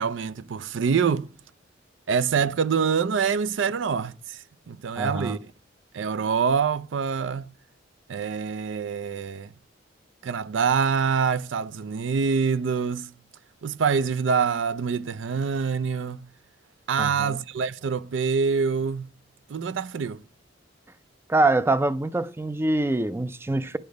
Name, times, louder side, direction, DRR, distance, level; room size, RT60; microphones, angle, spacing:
voice 1, 0.0-1.3 2.1-5.5 5.9-7.5 8.1-9.5 10.2-13.1 13.6-16.2 16.9-19.1 19.5-20.2, right 6 dB, 75° right, 0.4 m, -25 dB
voice 2, 5.0-5.4 17.0-17.4 21.3-23.8, right 2 dB, 15° right, 0.4 m, -24 dB
9.3 x 6.7 x 5.2 m
head